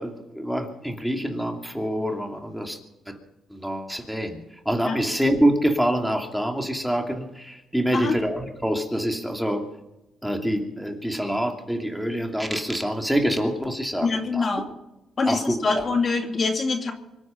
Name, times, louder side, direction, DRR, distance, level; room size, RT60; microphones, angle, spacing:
voice 1, 0.0-2.8 3.1-3.2 3.5-4.4 4.7-9.6 10.2-14.6 15.3-15.9, equal, ahead, 3 dB, 2.8 m, -26 dB
voice 2, 14.0-14.6 15.2-16.9, left 4 dB, 40° left, 4 dB, 2.3 m, -24 dB
25.0 x 9.8 x 5.9 m, 0.97 s
cardioid pair, 90°, 0 cm